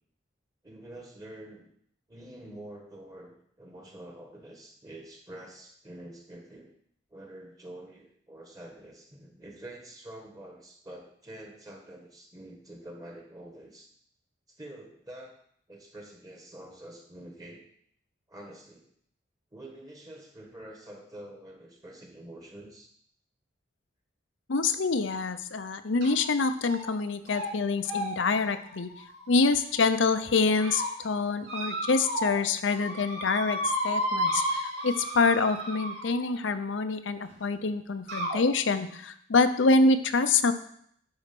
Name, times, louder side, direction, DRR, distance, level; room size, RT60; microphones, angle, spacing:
voice 1, 0.6-1.7 2.1-6.7 7.1-13.9 14.6-15.3 15.7-17.6 18.3-18.9 19.5-22.9, right 1 dB, 20° right, 2 dB, 1.4 m, -46 dB
voice 2, 24.5-28.9 29.3-33.6 33.8-40.5, left 3 dB, 85° left, 10 dB, 0.7 m, -26 dB
sound 1, 26.0-26.3 26.6-27.0 27.3-27.5 27.8-29.8 30.3-30.9 31.4-32.4 32.7-36.3 37.3-37.4 38.1-38.4, equal, 70° right, 3.3 m, -33 dB
10.5 x 4.3 x 5.9 m, 0.67 s
head